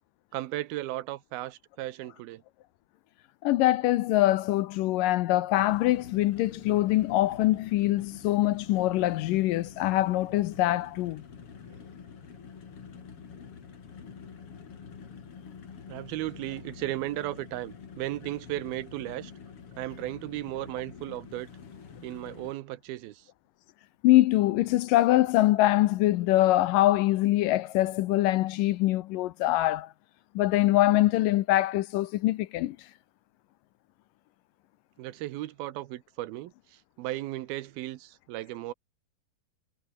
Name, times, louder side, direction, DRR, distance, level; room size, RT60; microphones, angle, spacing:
voice 1, 0.3-2.4 11.7-11.8 15.9-19.3 19.8-21.5 22.0-23.2 35.0-36.5 37.0-38.7, right 15 dB, 85° right, 2.8 m, -35 dB
voice 2, 3.4-11.2 24.0-29.9 30.4-32.8, left 15 dB, 75° left, 2.2 m, -24 dB
sound 1, 5.5-22.5, left 6 dB, 40° left, 3.1 m, -47 dB
omnidirectional pair, 4.3 m